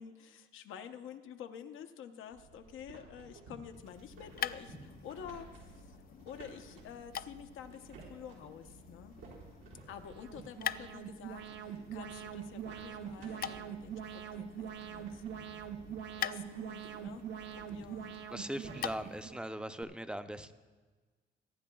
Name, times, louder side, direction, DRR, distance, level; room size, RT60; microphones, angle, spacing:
voice 1, 0.0-5.5 6.3-9.2 9.9-15.6 16.2-17.3 17.6-18.1, left 8 dB, 85° left, 6 dB, 0.8 m, -49 dB
sound 1, 2.3-19.1, right 3 dB, 90° right, 4.3 m, -55 dB
sound 2, 3.7-19.3, left 10 dB, 50° left, 0.4 m, -46 dB
Alarm, 9.9-19.8, right 9 dB, 65° right, 0.8 m, -44 dB
voice 2, 18.3-20.5, right 1 dB, 5° right, 10 dB, 0.6 m, -40 dB
23.5 x 9.9 x 2.3 m, 1.4 s
cardioid pair, 90°, 20 cm